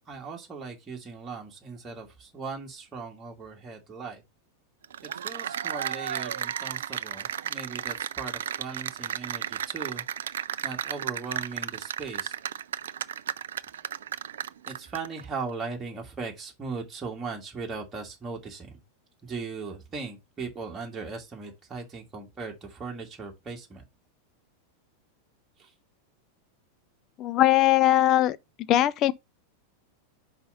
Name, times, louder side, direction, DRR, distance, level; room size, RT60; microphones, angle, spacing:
voice 1, 0.1-4.2 5.0-10.0 10.6-12.3 14.7-18.8 19.2-23.9 25.6-25.7, right 4 dB, 20° right, 1.8 m, -38 dB
Cheering / Applause, 4.8-15.2, right 9 dB, 65° right, 0.3 m, -33 dB
voice 2, 27.2-28.4 28.7-29.1, left 14 dB, 35° left, 0.5 m, -20 dB
5.4 x 5.1 x 5.6 m
figure-of-eight pair, 90°, 0 cm